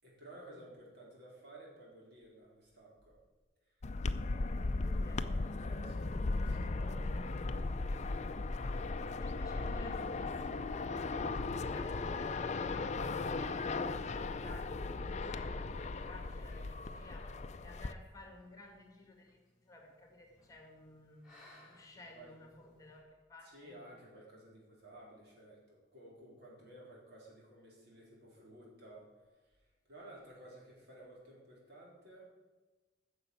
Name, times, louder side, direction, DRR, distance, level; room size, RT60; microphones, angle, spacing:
voice 1, 0.0-3.2 3.6-3.8 5.6-7.8 21.9-22.4 23.4-32.3, right 1 dB, 65° right, -4 dB, 4.1 m, -55 dB
sound 1, 3.8-17.9, left 3 dB, 40° left, 0.5 m, -37 dB
voice 2, 4.8-5.3 9.0-17.4 17.6-23.8, left 2 dB, 20° left, 2 dB, 1.9 m, -55 dB
sound 2, 18.0-23.0, left 1 dB, 5° right, 4.4 m, -65 dB
9.8 x 6.7 x 8.4 m, 1.2 s
head